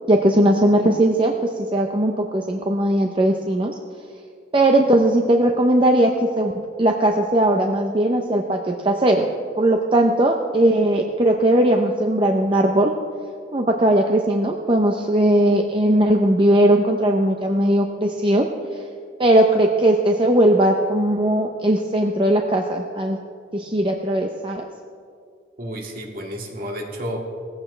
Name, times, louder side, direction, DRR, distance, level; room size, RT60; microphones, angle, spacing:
voice 1, 0.1-3.7 4.5-6.5 6.8-9.3 9.6-12.9 13.5-18.9 19.2-23.2 23.5-24.7, right 1 dB, 30° right, 3 dB, 0.7 m, -18 dB
voice 2, 25.6-27.2, equal, 50° right, 0 dB, 2.3 m, -31 dB
19.0 x 15.0 x 3.3 m, 2.2 s
head